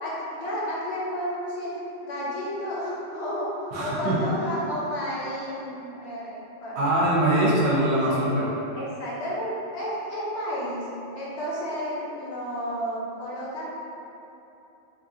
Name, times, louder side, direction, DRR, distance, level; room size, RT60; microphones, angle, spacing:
voice 1, 0.0-6.8 8.2-8.3 8.7-10.9 11.1-13.7, equal, 65° left, -6 dB, 0.8 m, -32 dB
voice 2, 3.7-4.5 6.8-8.5, right 1 dB, 70° right, -5 dB, 0.8 m, -23 dB
2.9 x 2.4 x 2.6 m, 2.9 s
omnidirectional pair, 1.3 m